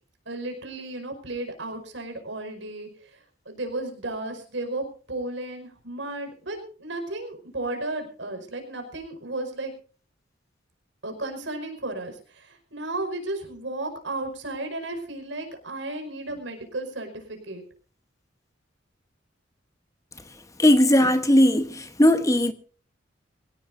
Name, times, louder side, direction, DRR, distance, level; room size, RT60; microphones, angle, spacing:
voice 1, 0.3-9.7 11.0-17.6, right 2 dB, 75° right, 5.3 m, -34 dB
voice 2, 20.6-22.5, left 1 dB, 15° left, 1.1 m, -18 dB
23.0 x 17.5 x 2.7 m
head